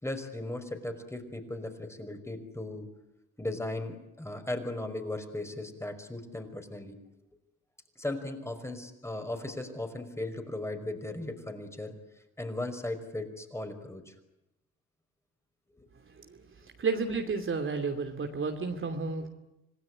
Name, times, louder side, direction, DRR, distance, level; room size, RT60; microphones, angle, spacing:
voice 1, 0.0-2.9 3.4-7.0 8.0-12.0 12.4-14.1 15.8-15.9, left 2 dB, 10° left, 7 dB, 5.4 m, -37 dB
voice 2, 16.8-19.3, right 4 dB, 40° right, 5 dB, 2.9 m, -31 dB
27.0 x 18.5 x 9.9 m, 0.93 s
cardioid pair, 90°, 30 cm